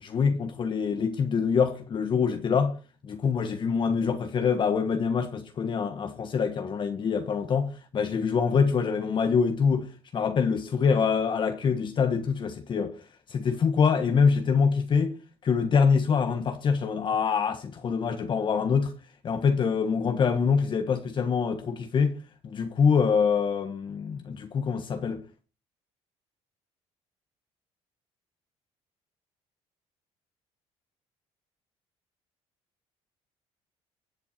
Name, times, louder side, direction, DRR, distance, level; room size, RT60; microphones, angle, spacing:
voice 1, 0.0-2.8 3.0-12.9 13.3-15.1 15.4-18.9 19.2-22.2 22.4-25.2, left 6 dB, 40° left, 1.4 m, -25 dB
23.5 x 7.9 x 4.4 m
cardioid pair, 110°, 12 cm